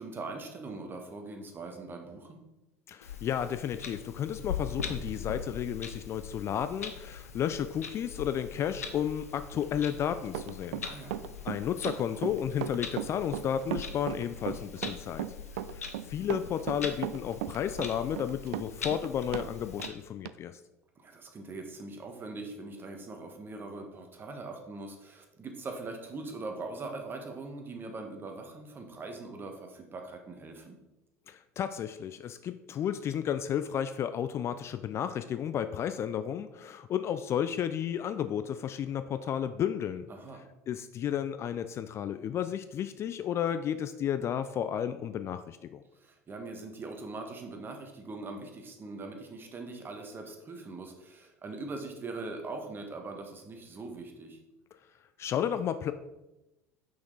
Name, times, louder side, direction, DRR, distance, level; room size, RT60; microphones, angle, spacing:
voice 1, 0.0-2.4 10.8-11.2 21.0-30.8 40.1-40.4 45.9-54.4, right 3 dB, 25° right, 4 dB, 1.3 m, -41 dB
voice 2, 2.9-11.1 11.4-15.3 15.7-20.6 31.3-40.1 40.7-45.8 55.2-55.9, left 9 dB, 35° left, 11 dB, 0.3 m, -32 dB
Clock, 3.0-19.9, left 6 dB, 80° left, 0.7 m, -42 dB
Run, 10.3-19.5 19.8-19.9 20.3-20.4, right 13 dB, 60° right, 0.3 m, -36 dB
6.0 x 6.0 x 3.9 m, 0.98 s
figure-of-eight pair, 70°, 8 cm